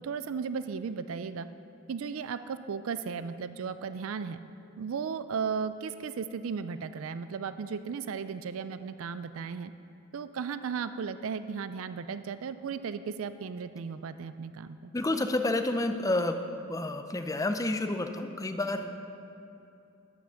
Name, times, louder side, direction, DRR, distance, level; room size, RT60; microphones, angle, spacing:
voice 1, 0.0-1.5 1.9-4.4 4.8-9.7 10.1-14.9, right 6 dB, 65° right, 12 dB, 0.4 m, -35 dB
voice 2, 14.9-18.9, left 2 dB, 15° left, 7 dB, 0.5 m, -30 dB
13.5 x 5.9 x 6.4 m, 2.8 s
head